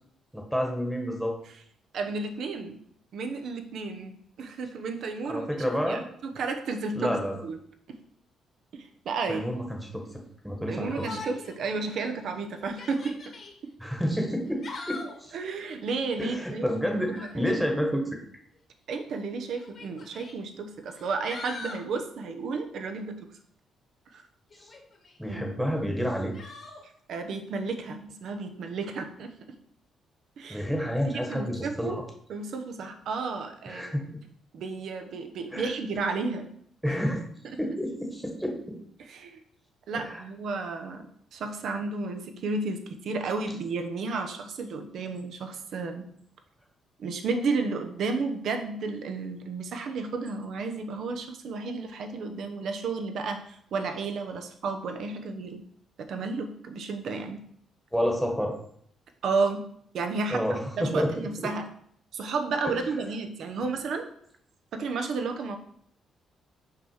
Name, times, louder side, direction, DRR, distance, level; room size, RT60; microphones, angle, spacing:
voice 1, 0.3-1.4 5.3-6.0 6.9-7.4 9.3-11.1 13.8-14.6 14.9-15.3 16.2-18.1 24.6-24.7 25.2-26.3 30.5-32.0 33.7-34.2 35.5-35.7 36.8-37.2 37.6-38.8 39.9-40.2 57.9-58.5 60.3-61.1 61.4-61.5, equal, ahead, 2 dB, 1.4 m, -29 dB
voice 2, 1.9-2.8 3.1-7.1 7.4-7.6 8.7-9.4 10.7-13.2 13.6-13.7 15.3-17.5 18.9-23.3 24.1-24.2 25.3-25.5 27.1-29.3 30.4-30.6 31.0-32.0 32.3-33.9 34.5-36.5 36.9-37.0 39.0-39.4 39.9-41.1 41.3-46.0 47.0-55.6 56.1-57.4 59.2-59.6 59.9-60.4 60.8-61.6 62.1-64.1 64.7-65.6, right 4 dB, 70° right, 6 dB, 0.9 m, -32 dB
Yell, 10.9-11.6 12.0-12.1 12.6-13.5 14.4-15.2 17.0-17.4 18.6-18.7 19.5-20.3 20.9-21.9 24.5-25.2 26.3-26.8, left 3 dB, 50° left, 1.6 m, -42 dB
5.9 x 4.9 x 4.8 m, 0.65 s
cardioid pair, 90°, 0 cm